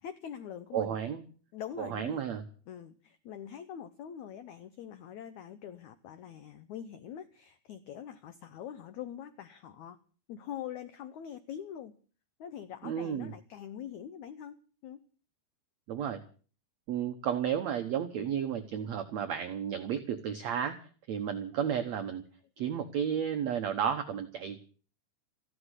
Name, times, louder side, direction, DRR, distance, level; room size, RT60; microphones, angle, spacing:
voice 1, 0.0-1.0 1.5-2.2 2.7-10.0 10.3-11.9 12.4-15.0, left 9 dB, 85° left, 11 dB, 1.6 m, -44 dB
voice 2, 0.7-1.2 1.8-2.4 12.8-13.3 15.9-16.2 16.9-22.2 22.6-24.6, right 8 dB, 70° right, 6 dB, 1.7 m, -32 dB
15.0 x 11.5 x 8.1 m, 0.41 s
omnidirectional pair, 4.6 m